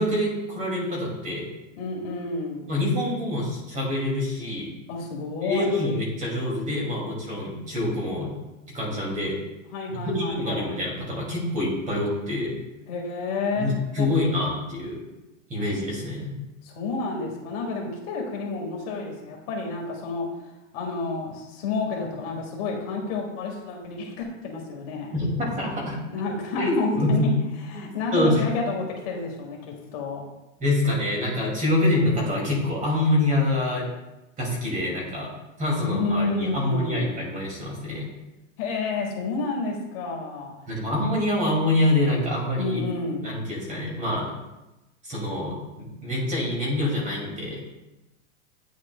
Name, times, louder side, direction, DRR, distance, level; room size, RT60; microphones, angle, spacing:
voice 1, 0.0-1.4 2.7-4.7 5.4-8.3 8.7-9.4 9.9-12.5 13.6-15.0 15.5-16.3 25.1-26.0 26.6-27.3 27.7-28.5 30.6-33.8 34.4-35.3 35.6-38.1 40.7-42.8 43.2-44.3 45.0-47.6, left 1 dB, 20° right, -3 dB, 2.2 m, -26 dB
voice 2, 1.8-2.7 4.9-5.7 9.7-10.8 12.9-13.7 14.0-14.1 16.6-20.3 20.7-25.1 26.1-27.3 27.7-30.2 35.7-37.1 38.6-40.5 42.5-43.3, left 3 dB, 50° left, 0 dB, 1.8 m, -30 dB
9.4 x 6.4 x 2.2 m, 1.0 s
supercardioid pair, 145°, 40 cm